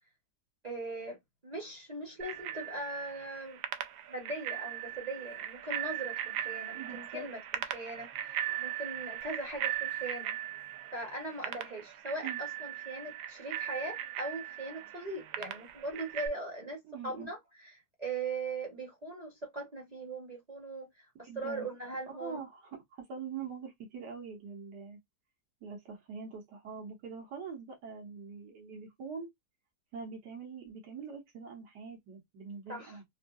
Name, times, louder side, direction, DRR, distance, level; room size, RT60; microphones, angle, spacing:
voice 1, 0.6-1.2 1.4-3.6 4.1-10.3 10.9-22.4 32.7-33.0, right 2 dB, 35° right, 0.7 m, -40 dB
Bicycle bell, 2.2-16.3, right 11 dB, 70° right, 0.9 m, -39 dB
voice 2, 6.7-7.3 12.2-12.4 16.8-17.3 21.2-21.7 22.1-25.0 25.6-29.3 29.9-33.0, right 5 dB, 85° right, 1.7 m, -44 dB
3.6 x 2.6 x 2.3 m
omnidirectional pair, 1.7 m